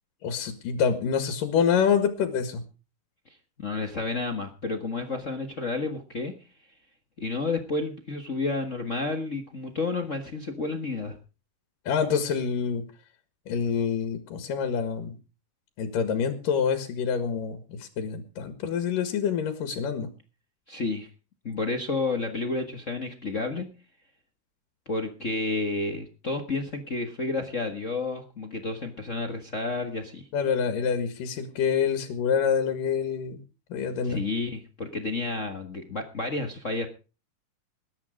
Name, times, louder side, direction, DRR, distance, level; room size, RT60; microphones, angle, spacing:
voice 1, 0.2-2.6 11.9-12.8 13.5-15.1 15.8-20.1 30.3-33.4 33.7-34.2, left 7 dB, 80° left, 9 dB, 3.3 m, -26 dB
voice 2, 3.6-6.3 7.2-11.2 20.7-21.1 21.4-23.7 24.9-30.3 34.0-36.9, left 3 dB, 50° left, 6 dB, 0.9 m, -31 dB
20.0 x 10.5 x 5.0 m, 0.34 s
omnidirectional pair, 3.8 m